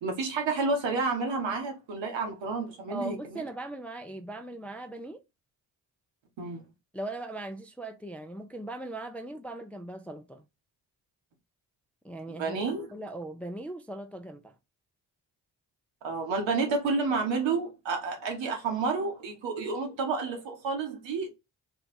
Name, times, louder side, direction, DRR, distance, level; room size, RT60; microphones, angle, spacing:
voice 1, 0.0-3.4 6.4-6.6 12.4-12.9 16.0-21.3, right 4 dB, 70° right, 1.1 m, -30 dB
voice 2, 2.9-5.2 6.9-10.4 12.0-12.6 12.9-14.6, right 1 dB, 5° left, 0.4 m, -39 dB
2.9 x 2.2 x 4.1 m
hypercardioid pair, 45°, 46 cm